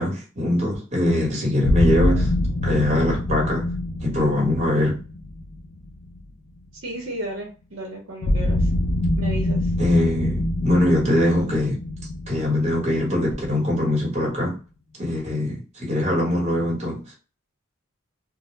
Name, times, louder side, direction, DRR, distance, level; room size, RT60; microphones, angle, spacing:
voice 1, 0.0-2.3 2.6-3.7 4.0-5.0 9.8-11.8 12.3-14.6 15.0-17.0, left 1 dB, 35° right, 1.1 m, -22 dB
sound 1, 1.6-6.6 8.2-13.9, left 1 dB, 60° left, 0.4 m, -25 dB
voice 2, 6.8-8.7 9.2-9.7, right 1 dB, 65° right, 0.8 m, -33 dB
2.1 x 2.1 x 3.0 m
head